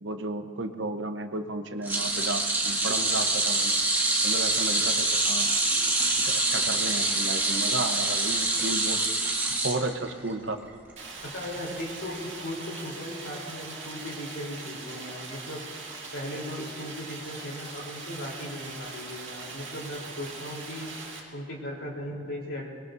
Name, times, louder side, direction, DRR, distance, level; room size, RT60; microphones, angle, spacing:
voice 1, 0.0-3.7 4.2-5.5 6.2-9.0 9.6-10.6, right 2 dB, 65° right, 7 dB, 1.0 m, -33 dB
sound 1, 1.8-10.3 10.7-10.9 12.1-12.2, right 2 dB, 10° right, 1.5 m, -26 dB
Stream, 11.0-21.2, right 3 dB, 35° right, 3.0 m, -41 dB
voice 2, 11.2-15.7 16.1-20.9 21.3-22.7, left 1 dB, 70° left, -2 dB, 3.7 m, -37 dB
23.5 x 21.5 x 2.7 m, 2.1 s
head